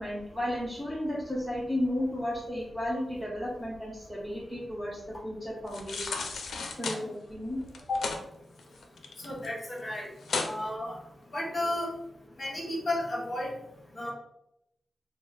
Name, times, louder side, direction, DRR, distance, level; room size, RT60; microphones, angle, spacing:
voice 1, 0.0-6.2 6.8-7.6, left 1 dB, 5° left, -8 dB, 0.9 m, -33 dB
sound 1, 5.7-7.0 7.7-8.2 8.6-9.5 9.8-9.9 10.2-10.5 11.0-11.1, left 4 dB, 85° left, 0.5 m, -34 dB
voice 2, 9.2-10.1 10.3-11.0 11.3-11.9 12.4-13.5 13.9-14.1, left 1 dB, 45° left, -4 dB, 1.2 m, -33 dB
4.1 x 2.1 x 4.0 m, 0.81 s
wide cardioid pair, 95°, 0 cm